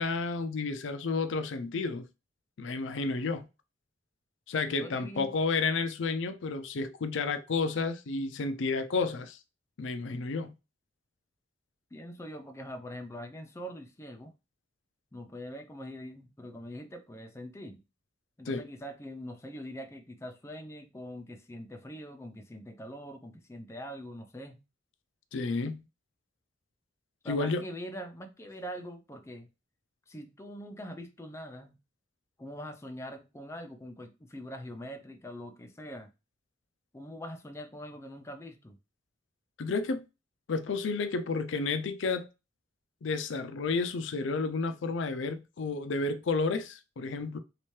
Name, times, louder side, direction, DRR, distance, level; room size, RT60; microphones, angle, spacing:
voice 1, 0.0-2.1 2.6-3.5 4.5-9.4 9.8-10.5 18.5-18.7 25.3-25.8 27.3-27.6 39.6-40.1 40.5-42.3 43.0-47.4, left 4 dB, 80° left, 0.5 m, -31 dB
voice 2, 4.6-5.3 11.9-14.3 15.1-17.8 18.4-24.6 27.2-29.5 30.1-31.8 32.4-36.1 36.9-38.8, equal, 15° left, 0.5 m, -43 dB
3.2 x 2.9 x 3.1 m
head